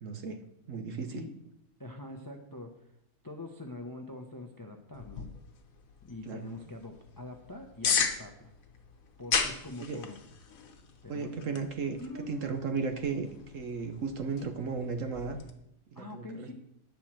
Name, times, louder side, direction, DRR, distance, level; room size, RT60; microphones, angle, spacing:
voice 1, 0.0-0.4 0.7-1.2 6.2-6.4 9.8-10.0 11.1-12.0 12.3-13.3 13.5-15.4 15.9-16.5, right 5 dB, 60° right, 7 dB, 1.0 m, -35 dB
voice 2, 1.8-2.7 3.2-5.3 6.0-8.5 9.2-10.2 11.0-11.5 12.0-12.6 15.9-16.5, left 2 dB, 25° left, 4 dB, 0.4 m, -44 dB
sound 1, 4.9-15.5, left 6 dB, 60° left, 1.3 m, -37 dB
8.9 x 4.7 x 7.3 m, 0.79 s
omnidirectional pair, 1.8 m